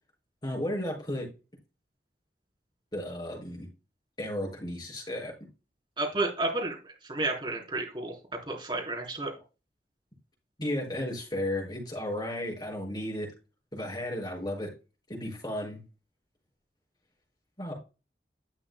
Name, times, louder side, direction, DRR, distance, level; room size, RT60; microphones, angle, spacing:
voice 1, 0.4-1.3 2.9-3.7 4.2-5.3 10.6-13.3 13.7-14.7 15.1-15.8 17.6-17.7, left 1 dB, 25° left, -1 dB, 5.9 m, -34 dB
voice 2, 6.0-6.8 7.1-8.1 8.5-9.3, right 2 dB, 25° right, -1 dB, 3.9 m, -31 dB
12.0 x 8.8 x 2.2 m, 0.30 s
head